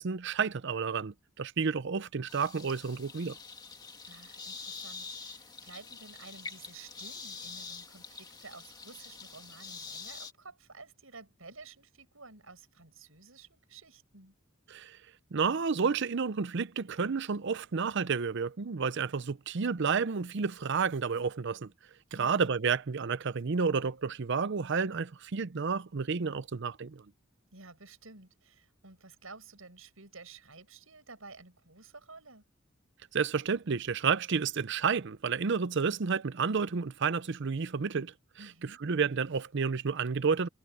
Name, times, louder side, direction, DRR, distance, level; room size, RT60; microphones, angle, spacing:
voice 1, 0.0-3.4 14.7-15.0 15.3-21.7 22.1-27.0 33.1-38.1 38.8-40.5, right 5 dB, 60° right, 0.6 m, -30 dB
sound 1, 2.3-10.3, left 4 dB, 20° left, 1.9 m, -45 dB
voice 2, 4.1-14.4 22.1-22.4 27.5-32.5 38.4-38.8, right 4 dB, 90° right, 6.7 m, -52 dB
head